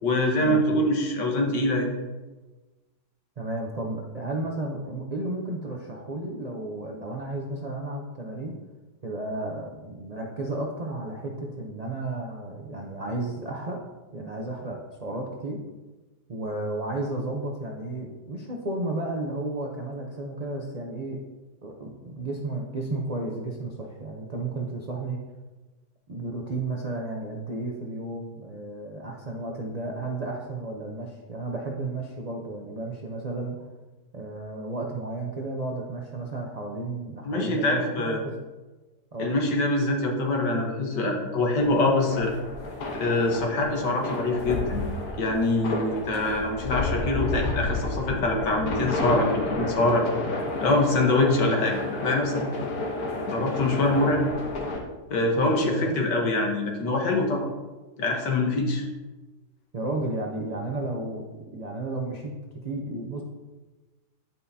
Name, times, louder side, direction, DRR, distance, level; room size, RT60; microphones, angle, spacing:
voice 1, 0.0-1.9 37.2-38.2 39.2-42.3 42.9-44.9 45.2-50.1 50.6-52.4 53.2-54.3 55.1-57.5 58.0-58.8, left 2 dB, 85° left, 1 dB, 1.9 m, -24 dB
voice 2, 3.4-8.6 9.0-13.8 14.1-15.6 16.3-21.2 21.6-25.2 26.1-33.6 34.1-38.3 39.1-39.3 55.4-56.1 59.7-62.3 62.6-63.2, right 2 dB, 50° right, -1 dB, 0.4 m, -33 dB
sound 1, 41.6-54.8, left 2 dB, 65° left, 1.6 m, -31 dB
10.5 x 5.6 x 2.7 m, 1.2 s
omnidirectional pair, 1.8 m